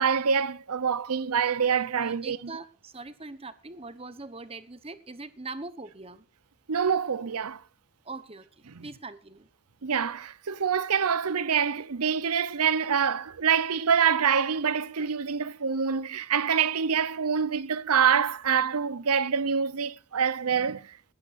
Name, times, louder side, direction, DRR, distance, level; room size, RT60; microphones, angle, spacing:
voice 1, 0.0-2.4 6.7-7.6 8.7-8.9 9.8-20.9, right 7 dB, 90° right, 0.7 m, -26 dB
voice 2, 1.9-6.2 8.0-9.5, right 3 dB, 25° right, 1.0 m, -42 dB
21.0 x 12.5 x 2.6 m
head